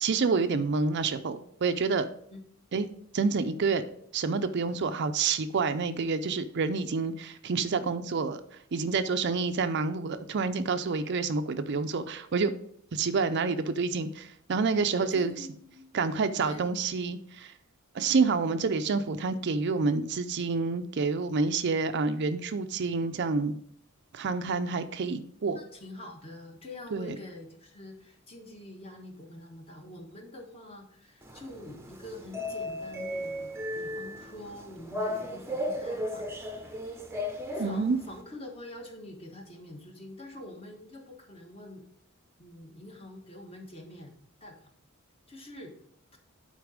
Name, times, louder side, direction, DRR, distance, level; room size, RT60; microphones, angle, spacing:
voice 1, 0.0-2.1 2.7-2.9 3.1-3.8 4.1-8.4 8.7-12.5 12.9-15.3 15.9-17.5 17.9-23.5 24.1-25.6 26.9-27.2 37.6-38.0, right 4 dB, 55° right, 10 dB, 0.5 m, -28 dB
voice 2, 14.9-16.0 16.4-16.8 25.5-36.7 37.5-41.8 42.4-44.1 44.4-44.7 45.3-45.7, left 1 dB, 25° left, 2 dB, 1.4 m, -46 dB
sound 1, 31.2-38.2, left 1 dB, 10° right, 0.7 m, -36 dB
9.4 x 4.0 x 5.0 m, 0.67 s
head